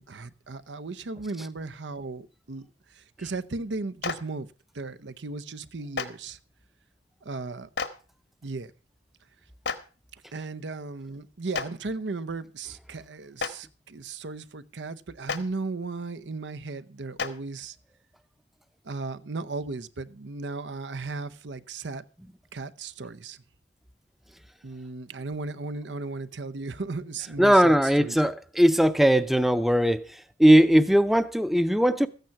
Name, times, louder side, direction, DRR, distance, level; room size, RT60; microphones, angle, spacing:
voice 1, 0.0-2.7 3.0-4.5 4.7-6.4 7.2-7.7 8.4-8.7 10.3-17.7 18.9-22.0 22.5-23.4 24.6-28.2, right 3 dB, 90° right, 0.8 m, -36 dB
Clapping, 4.0-4.1 5.9-6.0 7.7-7.9 9.6-9.8 11.5-11.6 13.4-13.5 15.3-15.4 17.2-17.3, left 5 dB, 75° left, 1.3 m, -29 dB
voice 2, 27.4-32.1, equal, ahead, 0.5 m, -19 dB
14.0 x 9.2 x 5.8 m
head